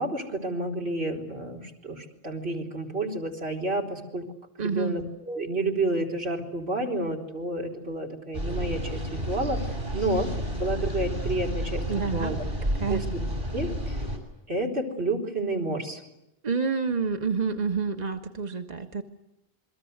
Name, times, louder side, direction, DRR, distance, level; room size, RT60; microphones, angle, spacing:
voice 1, 0.0-4.3 4.6-9.6 9.9-12.4 12.9-13.2 13.5-13.9 14.5-16.0, right 2 dB, 85° right, 1 dB, 4.5 m, -30 dB
voice 2, 4.6-5.0 11.9-12.3 12.8-13.0 16.4-19.0, right 5 dB, 40° right, 5 dB, 1.6 m, -28 dB
sound 1, 8.3-14.2, right 1 dB, 65° right, 6.5 m, -31 dB
28.0 x 23.0 x 8.1 m, 0.90 s
omnidirectional pair, 1.0 m